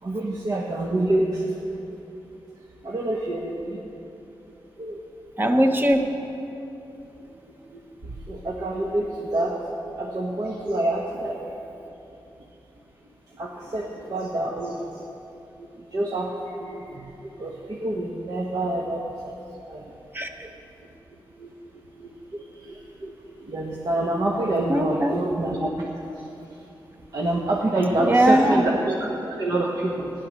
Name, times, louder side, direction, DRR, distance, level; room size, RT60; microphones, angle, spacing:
voice 1, 0.0-1.5 1.7-1.8 2.8-3.8 4.8-5.0 7.7-11.4 13.3-15.1 15.6-19.3 19.7-19.8 21.4-21.5 22.0-25.8 27.1-30.1, right 1 dB, 50° right, -2 dB, 1.3 m, -27 dB
voice 2, 5.4-6.1 20.1-20.5 24.7-25.1 28.0-28.9, right 1 dB, 25° right, 4 dB, 1.1 m, -20 dB
14.0 x 10.5 x 6.4 m, 2.9 s
wide cardioid pair, 100°, 8 cm